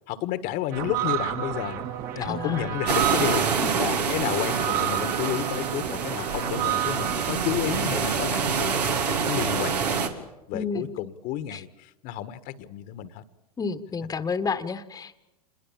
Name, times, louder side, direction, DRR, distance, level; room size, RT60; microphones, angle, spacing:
voice 1, 0.1-1.8 2.1-10.1 10.5-13.2, left 12 dB, 50° left, 13 dB, 1.5 m, -31 dB
sound 1, 0.7-7.8, right 12 dB, 50° right, 2.2 m, -31 dB
voice 2, 2.2-2.8 3.6-3.7 10.5-10.9 11.5-11.6 13.6-15.2, left 5 dB, 20° left, 10 dB, 1.4 m, -30 dB
sound 2, 2.9-10.1, right 6 dB, 85° right, 3.0 m, -26 dB
27.0 x 21.5 x 7.3 m, 0.96 s
hypercardioid pair, 105°, 20 cm